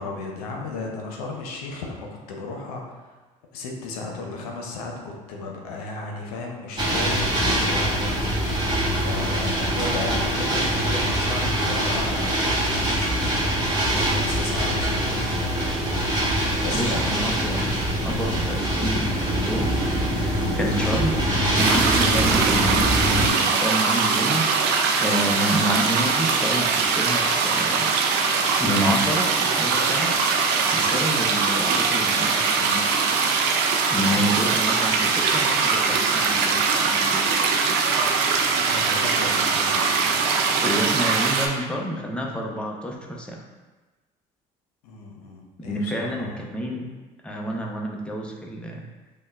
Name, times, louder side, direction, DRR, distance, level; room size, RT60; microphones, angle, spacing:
voice 1, 0.0-3.2 3.5-8.6 8.9-13.4 13.9-15.5 16.6-17.0 34.1-34.4 38.6-41.0 44.8-46.4, left 3 dB, 85° left, 0 dB, 0.5 m, -35 dB
sound 1, 6.8-23.3, right 1 dB, 25° right, 1.1 m, -23 dB
voice 2, 16.7-17.7 18.0-19.7 20.2-21.1 21.5-24.4 25.0-27.9 28.6-30.1 30.7-32.8 33.9-37.2 40.6-43.4 45.7-46.8 47.2-48.8, equal, 5° left, -1 dB, 0.6 m, -28 dB
sound 2, 21.6-41.5, right 5 dB, 65° right, 0.5 m, -22 dB
5.1 x 2.1 x 2.3 m, 1.2 s
hypercardioid pair, 65°, 19 cm